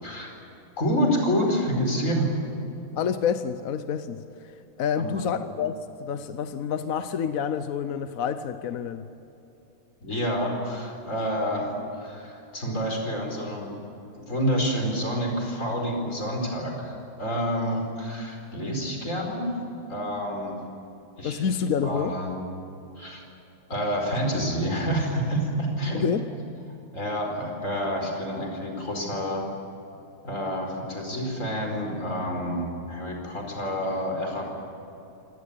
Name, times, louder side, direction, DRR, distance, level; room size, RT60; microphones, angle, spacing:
voice 1, 0.0-0.3 0.8-2.3 5.0-5.2 10.0-13.8 14.1-19.6 19.9-20.6 21.2-21.4 21.8-22.3 23.0-23.2 23.7-26.1 26.9-29.4 30.2-34.5, equal, 35° left, 1 dB, 5.1 m, -28 dB
voice 2, 3.0-4.5 4.8-9.1 21.2-22.1 25.9-26.3, left 7 dB, 60° left, 10 dB, 0.9 m, -28 dB
24.5 x 19.0 x 8.8 m, 2.9 s
omnidirectional pair, 2.3 m